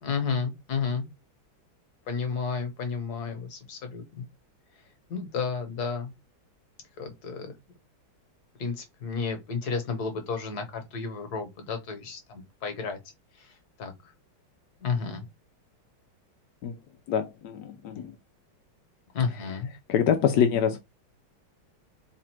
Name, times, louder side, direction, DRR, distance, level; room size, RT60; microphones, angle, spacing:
voice 1, 0.0-1.0 2.1-4.2 5.1-6.1 7.0-7.5 8.6-13.0 13.3-14.1 14.8-15.2 19.1-19.7, left 5 dB, 55° left, 1.5 m, -32 dB
voice 2, 17.1-18.1 19.9-20.8, left 8 dB, 70° left, 1.0 m, -25 dB
4.1 x 2.5 x 4.5 m
omnidirectional pair, 2.3 m